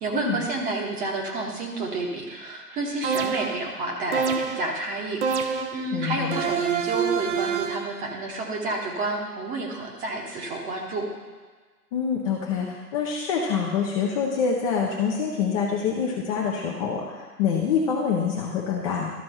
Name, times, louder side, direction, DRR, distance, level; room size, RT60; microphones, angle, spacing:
voice 1, 0.0-11.1, right 2 dB, 15° right, 0 dB, 1.2 m, -30 dB
sound 1, 3.0-3.7 4.1-4.8 5.2-5.9 6.3-7.9, right 6 dB, 45° right, 0.8 m, -26 dB
voice 2, 5.9-6.4 11.9-19.1, left 6 dB, 20° left, -2 dB, 0.8 m, -26 dB
13.0 x 4.3 x 5.6 m, 1.5 s
figure-of-eight pair, 125°, 47 cm